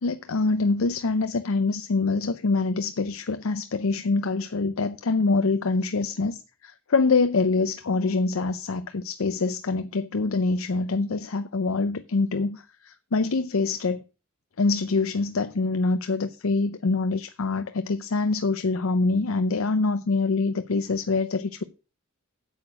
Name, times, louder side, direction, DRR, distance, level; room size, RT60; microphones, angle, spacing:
voice 1, 0.0-14.0 14.6-21.6, left 3 dB, 80° left, 0.6 m, -25 dB
8.8 x 8.0 x 6.0 m
head